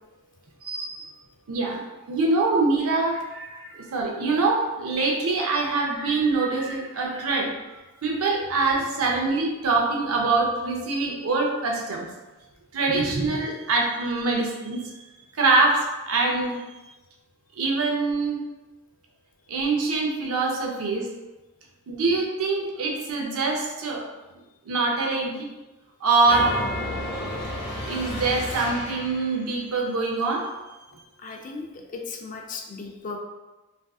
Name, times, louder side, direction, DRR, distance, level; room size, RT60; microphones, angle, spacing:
voice 1, 0.6-1.1 1.5-1.8 2.1-7.5 8.0-12.1 12.7-14.9 15.4-16.6 17.6-18.4 19.5-21.1 21.9-24.1 24.7-25.5 26.0-26.6 27.8-30.5, right 3 dB, 80° right, 0 dB, 0.6 m, -24 dB
sound 1, 26.2-29.4, left 1 dB, 55° left, 0.8 m, -32 dB
voice 2, 31.2-33.2, left 4 dB, 35° left, 2 dB, 0.3 m, -36 dB
3.5 x 2.6 x 2.3 m, 1.1 s
head